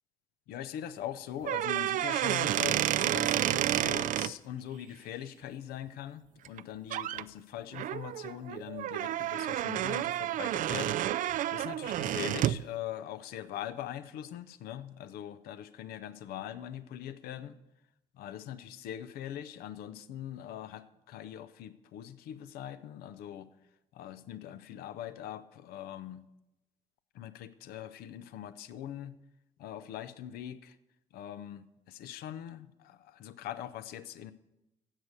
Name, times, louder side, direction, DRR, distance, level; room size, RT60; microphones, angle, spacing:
voice 1, 0.5-17.6 18.1-23.5 23.9-26.2 27.1-29.2 29.6-30.8 31.1-34.3, left 11 dB, 65° left, 13 dB, 0.7 m, -42 dB
sound 1, 1.4-4.3 6.5-6.6 6.9-7.2 7.7-12.6, right 12 dB, 55° right, 0.4 m, -30 dB
12.0 x 8.2 x 6.5 m, 0.92 s
hypercardioid pair, 45°, 17 cm